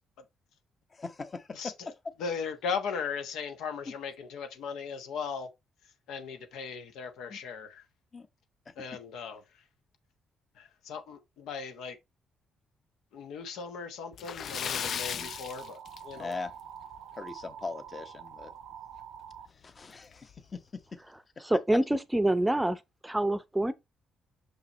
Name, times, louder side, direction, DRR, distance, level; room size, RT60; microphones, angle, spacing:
voice 1, 0.9-1.7 3.8-3.9 7.3-7.4 8.1-8.3 15.0-15.3 16.2-16.5 17.2-18.5 19.5-20.8 21.4-21.5, left 4 dB, 35° left, 0.9 m, -40 dB
voice 2, 2.2-5.5 6.1-7.8 8.8-9.4 10.6-12.0 13.1-16.3, left 6 dB, 85° left, 1.1 m, -37 dB
Splash splatter, 14.1-16.5 16.8-17.0 17.4-17.5 19.0-19.1 19.4-19.5 20.1-20.4, left 8 dB, 60° left, 0.3 m, -36 dB
sound 1, 14.4-19.5, right 9 dB, 85° right, 0.7 m, -46 dB
voice 3, 21.4-23.7, right 1 dB, 10° right, 0.6 m, -27 dB
6.0 x 5.5 x 3.0 m
cardioid pair, 90°, 0 cm